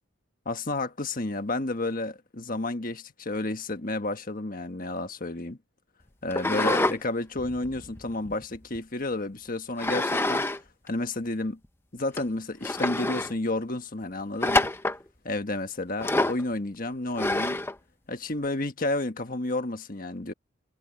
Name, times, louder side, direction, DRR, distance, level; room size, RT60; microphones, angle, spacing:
voice 1, 0.4-5.6 6.2-10.4 10.8-11.6 11.9-14.7 15.2-17.6 18.1-20.3, left 2 dB, 40° left, 1.5 m, -31 dB
sound 1, 6.3-7.0 7.4-8.8 9.8-10.6 10.9-11.0 11.6-11.7 12.2-12.3 12.6-13.3 14.4-15.0 16.0-16.4 17.2-17.7, left 2 dB, 10° left, 0.8 m, -26 dB
head